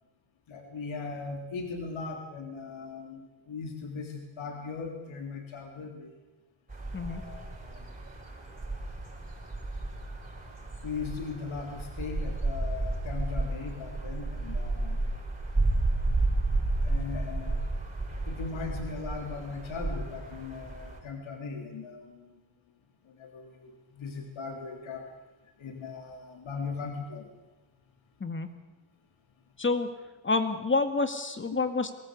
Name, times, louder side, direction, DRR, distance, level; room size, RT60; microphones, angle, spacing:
voice 1, 0.5-6.1 7.0-7.9 10.8-15.1 16.8-17.7 18.3-22.3 23.0-25.1 25.6-27.3 31.5-31.6, left 4 dB, 70° left, 3 dB, 3.6 m, -39 dB
sound 1, 6.7-21.0, right 2 dB, 15° right, 6.2 m, -32 dB
voice 2, 30.2-31.9, left 3 dB, 25° left, 8 dB, 2.0 m, -28 dB
23.5 x 19.0 x 8.4 m, 1.1 s
wide cardioid pair, 150°, 49 cm